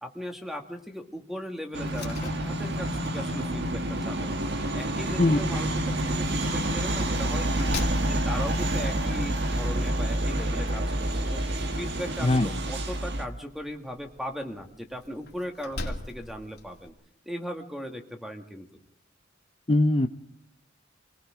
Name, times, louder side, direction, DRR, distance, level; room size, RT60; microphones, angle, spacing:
voice 1, 0.0-4.4 4.7-5.8 6.1-7.7 8.1-11.4 11.8-16.9 17.3-18.7, equal, ahead, 4 dB, 2.0 m, -38 dB
sound 1, 1.7-13.2, right 1 dB, 60° right, 1.7 m, -28 dB
Slam, 1.8-16.9, left 2 dB, 60° left, 2.6 m, -44 dB
voice 2, 19.7-20.1, left 2 dB, 30° left, 6 dB, 0.7 m, -20 dB
27.5 x 19.5 x 5.0 m, 0.72 s
head